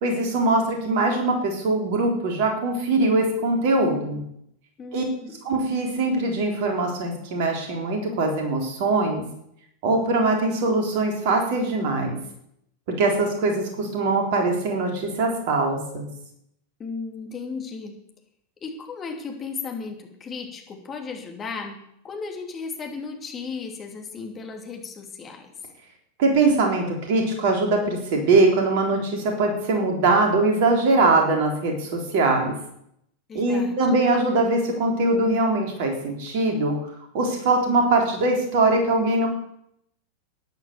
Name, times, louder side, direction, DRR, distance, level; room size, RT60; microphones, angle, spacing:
voice 1, 0.0-4.2 4.9-5.0 5.4-9.2 9.8-12.2 13.0-16.1 26.2-32.5 33.3-36.8 37.1-39.3, right 2 dB, 50° right, 1 dB, 3.8 m, -22 dB
voice 2, 4.8-5.4 16.8-18.0 18.6-21.8 22.0-25.5 33.3-34.0, left 4 dB, 25° left, 2 dB, 2.9 m, -35 dB
12.0 x 10.5 x 7.0 m, 0.75 s
figure-of-eight pair, 90°, 0 cm